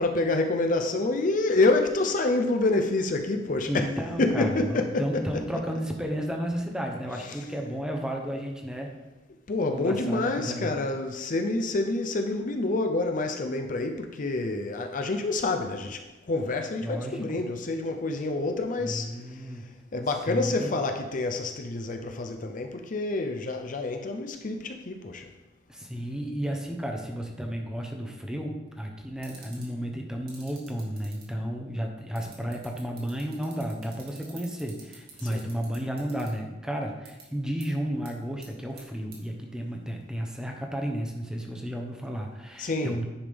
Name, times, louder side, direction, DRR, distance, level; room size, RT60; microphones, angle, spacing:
voice 1, 0.0-3.9 4.2-5.7 7.1-7.5 9.5-19.5 19.9-25.3 35.2-35.5 42.6-43.0, left 2 dB, 45° left, 0.6 m, -28 dB
voice 2, 3.7-9.0 9.7-10.8 16.8-17.4 18.8-19.6 20.3-20.7 25.7-43.0, equal, 5° right, 0.9 m, -33 dB
sound 1, 29.2-29.6 30.3-31.2 32.1-36.3 37.0-37.2 37.6-37.7 38.0-38.1 38.4-38.8 39.1-39.2, right 8 dB, 60° right, 2.1 m, -48 dB
9.8 x 3.6 x 5.1 m
head